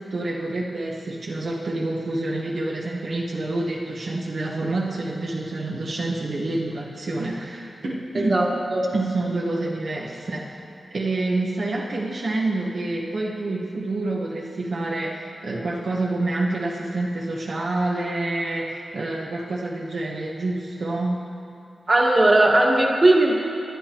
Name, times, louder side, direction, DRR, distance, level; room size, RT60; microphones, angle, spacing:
voice 1, 0.0-8.5 8.9-10.6 10.9-21.2, right 2 dB, 70° right, -4 dB, 1.4 m, -27 dB
voice 2, 8.2-8.8 21.9-23.3, right 2 dB, 35° right, -2 dB, 1.8 m, -18 dB
23.0 x 10.0 x 3.1 m, 2.6 s
wide cardioid pair, 85°, 0 cm